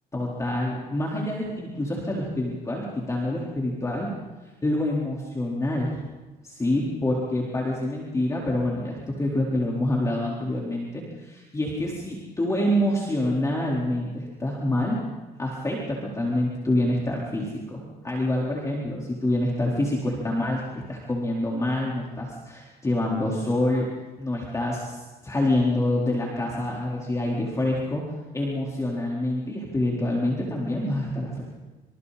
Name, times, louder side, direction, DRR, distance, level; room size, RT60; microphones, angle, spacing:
voice 1, 0.1-4.1 4.6-6.0 6.4-15.0 15.4-23.9 24.2-28.0 28.3-31.4, left 1 dB, 20° left, -3 dB, 4.1 m, -26 dB
27.0 x 26.5 x 4.2 m, 1.2 s
cardioid pair, 110°, 17 cm